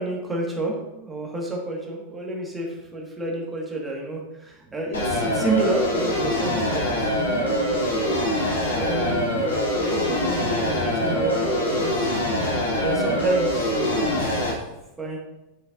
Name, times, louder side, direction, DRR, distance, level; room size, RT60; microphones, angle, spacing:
voice 1, 0.0-6.9 7.9-8.2 8.7-9.4 9.8-12.1 12.8-14.6 15.0-15.2, right 2 dB, 10° right, -2 dB, 1.9 m, -29 dB
sound 1, 4.9-14.5, left 1 dB, 70° left, 2.9 m, -24 dB
9.1 x 7.2 x 2.7 m, 0.96 s
figure-of-eight pair, 90°, 0 cm